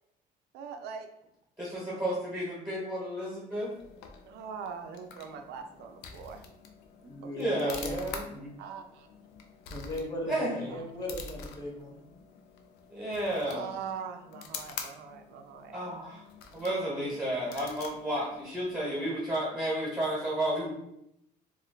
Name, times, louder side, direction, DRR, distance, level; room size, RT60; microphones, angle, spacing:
voice 1, 0.5-1.1 1.9-2.0 4.3-6.4 7.2-7.8 8.6-9.1 10.7-10.9 13.5-15.8, right 6 dB, 80° right, 5 dB, 0.4 m, -42 dB
voice 2, 1.6-3.7 7.4-8.5 10.3-10.7 12.9-13.7 15.7-16.2 16.5-20.7, right 1 dB, 10° right, -6 dB, 1.0 m, -32 dB
sound 1, 3.5-19.1, left 5 dB, 85° left, 0.4 m, -47 dB
voice 3, 7.0-8.1 9.7-12.0, left 1 dB, 25° left, -2 dB, 0.9 m, -37 dB
2.4 x 2.2 x 3.7 m, 0.79 s
cardioid pair, 110°, 17 cm